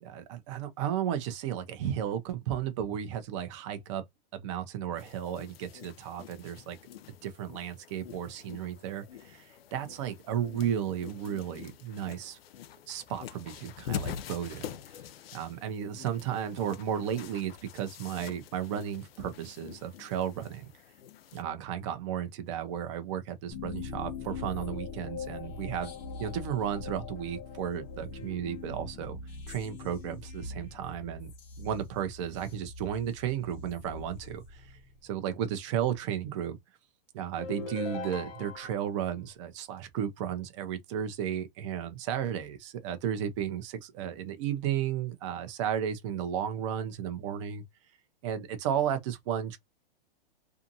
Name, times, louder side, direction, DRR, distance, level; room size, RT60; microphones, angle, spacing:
voice 1, 0.0-4.0 4.3-6.8 7.2-12.4 12.9-14.7 15.3-20.7 21.3-25.9 26.2-29.2 29.5-31.3 31.6-34.6 35.0-36.6 37.1-47.6 48.2-49.6, right 9 dB, 30° right, 0.6 m, -34 dB
sound 1, 5.0-21.4, left 9 dB, 90° left, 0.5 m, -45 dB
sound 2, 23.5-35.1, left 4 dB, 20° left, 0.6 m, -42 dB
sound 3, 37.4-38.9, left 5 dB, 70° left, 1.1 m, -39 dB
2.6 x 2.4 x 2.6 m
hypercardioid pair, 160°, 29 cm